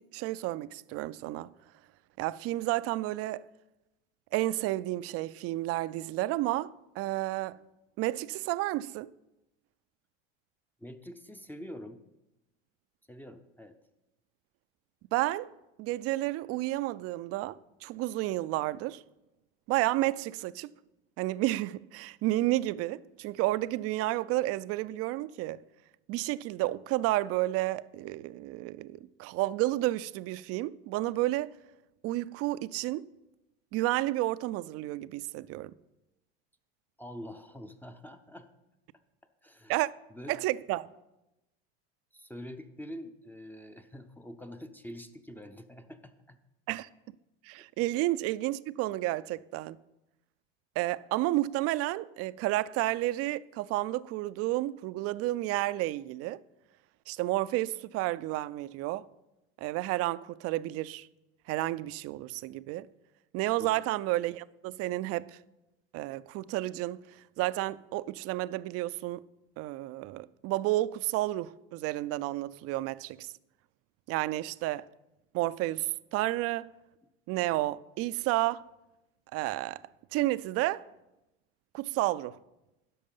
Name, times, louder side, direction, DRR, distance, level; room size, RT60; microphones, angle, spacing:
voice 1, 0.0-1.5 2.2-3.4 4.3-7.6 8.0-9.1 15.1-15.5 15.8-19.0 19.7-20.7 21.2-25.6 26.1-31.5 32.0-33.1 33.7-35.7 39.7-39.9 40.3-40.9 46.7-46.9 47.4-49.8 50.8-56.4 57.1-59.1 59.6-61.1 61.5-62.9 63.3-65.4 65.9-67.0 67.4-69.2 69.6-73.3 74.1-74.9 75.3-76.7 77.3-78.6 79.3-79.8 80.1-80.9 81.7-82.4, right 17 dB, 50° right, 0.4 m, -31 dB
voice 2, 10.8-12.0 13.1-13.8 37.0-38.5 39.4-39.8 40.1-40.4 42.1-46.4 47.6-47.7 63.6-63.8, equal, 5° left, 0.6 m, -45 dB
11.0 x 6.5 x 5.6 m
hypercardioid pair, 90°, 31 cm